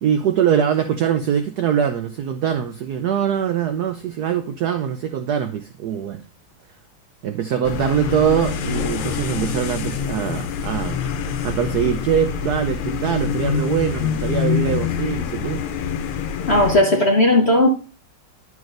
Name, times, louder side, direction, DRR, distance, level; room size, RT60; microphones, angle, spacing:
voice 1, 0.0-6.2 7.2-11.0 11.4-15.6, right 8 dB, 85° right, 0.8 m, -22 dB
sound 1, 7.6-16.8, left 7 dB, 85° left, 1.6 m, -25 dB
voice 2, 16.5-17.7, left 1 dB, 50° left, 0.7 m, -15 dB
10.5 x 6.1 x 2.5 m
omnidirectional pair, 2.3 m